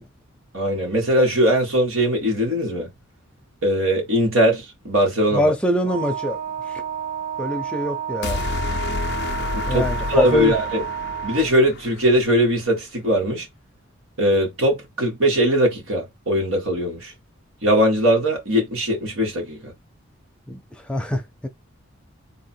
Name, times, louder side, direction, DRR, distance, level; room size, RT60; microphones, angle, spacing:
voice 1, 0.5-2.9 3.6-5.5 9.5-10.8 11.2-13.5 14.2-17.1 17.6-19.7, equal, 85° right, 1.8 m, -20 dB
voice 2, 5.3-6.4 7.4-8.4 9.7-10.5 20.5-20.6 20.9-21.5, equal, 5° left, 0.6 m, -24 dB
Wind instrument woodwind instrument, 5.8-11.6, right 9 dB, 55° right, 1.7 m, -30 dB
sound 1, 8.2-12.5, left 4 dB, 55° left, 0.4 m, -29 dB
3.8 x 2.5 x 4.3 m
head